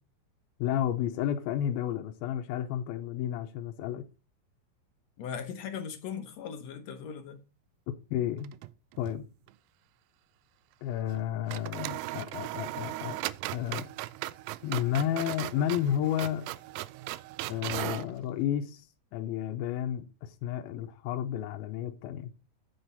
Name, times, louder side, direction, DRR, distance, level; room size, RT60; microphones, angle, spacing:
voice 1, 0.6-4.1 8.1-8.5 9.0-9.2 10.8-13.2 13.5-13.9 14.6-16.5 17.5-18.9 19.1-22.3, left 10 dB, 90° left, 2.6 m, -31 dB
voice 2, 5.2-7.4, left 7 dB, 70° left, 1.7 m, -39 dB
sound 1, 8.4-9.2 9.5-9.6 11.1-11.2 11.5-18.1, right 17 dB, 90° right, 2.4 m, -38 dB
7.9 x 6.9 x 4.0 m
omnidirectional pair, 4.1 m